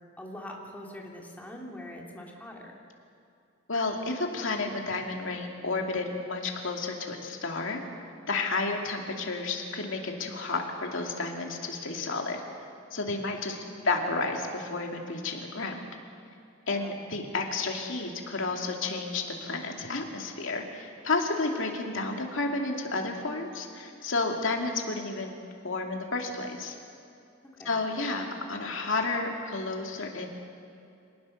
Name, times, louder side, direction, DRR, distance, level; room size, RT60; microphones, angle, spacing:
voice 1, 0.2-2.8 13.6-13.9 16.7-17.0 27.5-27.9, left 1 dB, 10° left, -1 dB, 2.9 m, -43 dB
voice 2, 3.7-7.8 8.3-12.4 12.9-13.6 13.8-15.8 16.7-25.4 25.6-26.8 27.6-30.3, left 3 dB, 65° left, 2 dB, 2.7 m, -31 dB
26.0 x 18.5 x 6.6 m, 2.5 s
head